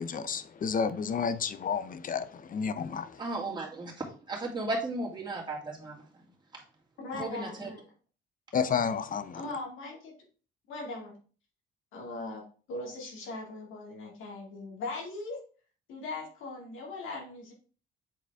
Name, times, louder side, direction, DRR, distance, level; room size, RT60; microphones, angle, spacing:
voice 1, 0.0-3.1 8.5-9.4, left 6 dB, 45° left, 0.6 m, -31 dB
voice 2, 3.2-6.0 7.2-7.7, right 2 dB, 20° right, 2.4 m, -35 dB
voice 3, 7.0-7.9 9.3-10.1 10.7-11.1 11.9-12.4 12.7-15.4 15.9-17.5, left 2 dB, 85° left, 2.3 m, -39 dB
7.5 x 3.9 x 3.5 m
cardioid pair, 90°, 20 cm